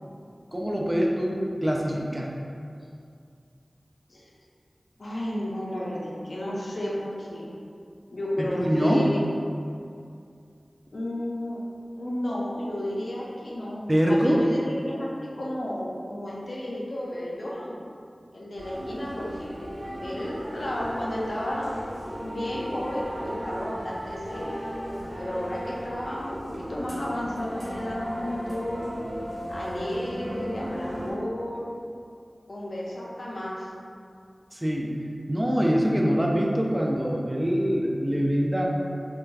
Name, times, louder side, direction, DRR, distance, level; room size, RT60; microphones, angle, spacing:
voice 1, 0.5-2.3 8.4-9.1 13.9-14.5 34.5-34.9 35.3-38.7, equal, 15° right, -2 dB, 0.3 m, -24 dB
voice 2, 5.0-7.5 8.1-9.3 10.9-11.6 12.0-17.8 18.3-19.6 20.0-21.9 22.2-24.6 25.2-29.0 29.5-31.7 32.5-33.7, left 1 dB, 75° left, -5 dB, 0.5 m, -32 dB
sound 1, 18.5-31.1, equal, 70° right, 0.8 m, -36 dB
2.5 x 2.2 x 3.1 m, 2.4 s
wide cardioid pair, 55°, 0 cm